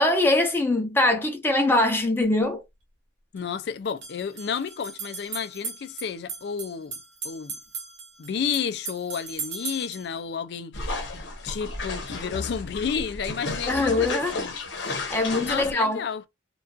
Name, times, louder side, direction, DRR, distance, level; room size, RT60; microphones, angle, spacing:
voice 1, 0.0-2.6 13.7-14.4 15.1-16.0, left 2 dB, 10° left, 0.6 m, -22 dB
sound 1, 2.2-2.3 3.8-10.1, right 5 dB, 75° right, 0.9 m, -38 dB
voice 2, 3.3-7.0 7.2-7.6 8.2-14.9 15.4-16.2, left 6 dB, 60° left, 0.4 m, -31 dB
sound 2, 10.7-15.7, left 3 dB, 75° left, 0.8 m, -33 dB
2.4 x 2.3 x 2.3 m
head